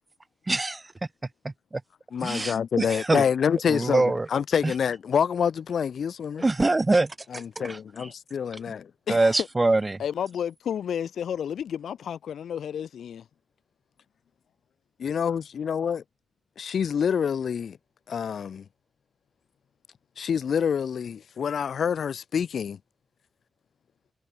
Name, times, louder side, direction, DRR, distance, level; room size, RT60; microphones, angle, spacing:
voice 1, 0.5-0.8 2.2-3.2 3.7-4.3 4.6-4.7 6.4-7.8 9.1-10.0, right 2 dB, 20° right, 6.6 m, -24 dB
voice 2, 2.1-6.4 7.3-8.9 15.0-16.0 16.6-17.8 18.1-18.6 20.2-22.8, left 7 dB, 60° left, 1.6 m, -27 dB
voice 3, 9.1-9.5 10.0-13.2, left 8 dB, 85° left, 4.7 m, -31 dB
wide cardioid pair, 165°, 0 cm